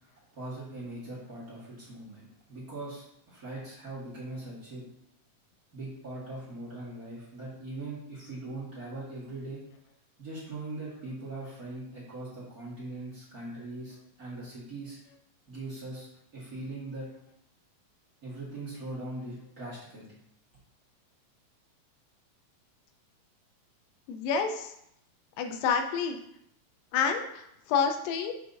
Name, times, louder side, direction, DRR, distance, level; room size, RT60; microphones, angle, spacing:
voice 1, 0.3-4.9 5.7-9.6 10.2-15.0 15.5-17.1 18.2-20.1, right 2 dB, 40° right, -8 dB, 1.5 m, -41 dB
voice 2, 24.1-24.7 25.4-26.2 26.9-28.3, left 6 dB, 90° left, 5 dB, 2.3 m, -28 dB
6.7 x 5.7 x 2.6 m, 0.76 s
omnidirectional pair, 3.9 m